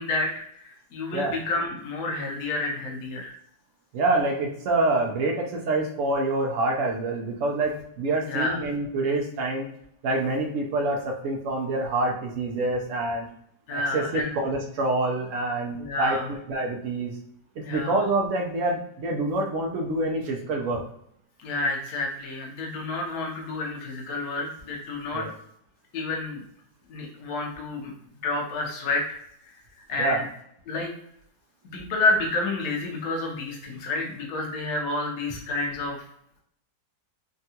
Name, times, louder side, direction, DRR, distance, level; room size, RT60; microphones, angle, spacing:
voice 1, 0.0-3.3 8.3-8.6 13.7-14.4 15.8-16.2 17.6-17.9 21.4-25.3 25.9-26.4 26.9-27.9 28.2-29.2 29.9-30.2 30.7-30.9 31.7-36.0, left 2 dB, 60° left, 0 dB, 1.1 m, -29 dB
voice 2, 3.9-9.7 10.0-13.3 13.7-17.1 17.7-20.8 25.1-25.3 30.0-30.2, right 2 dB, 75° right, 1 dB, 0.7 m, -26 dB
3.5 x 2.2 x 2.7 m, 0.70 s
omnidirectional pair, 1.9 m